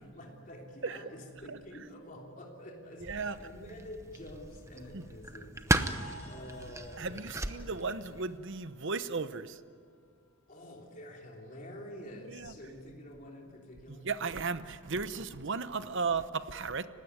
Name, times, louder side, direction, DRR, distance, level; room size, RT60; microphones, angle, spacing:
voice 1, 0.0-8.0 10.5-14.1, left 1 dB, 35° left, -1 dB, 3.3 m, -48 dB
sound 1, 3.0-8.4, right 2 dB, 15° right, 0.8 m, -36 dB
voice 2, 3.0-3.4 4.9-5.0 7.0-9.6 12.3-12.5 13.9-16.9, right 4 dB, 55° right, 12 dB, 0.9 m, -35 dB
sound 2, 5.8-10.4, equal, 70° left, 7.2 m, -55 dB
30.0 x 16.0 x 9.6 m, 2.1 s
head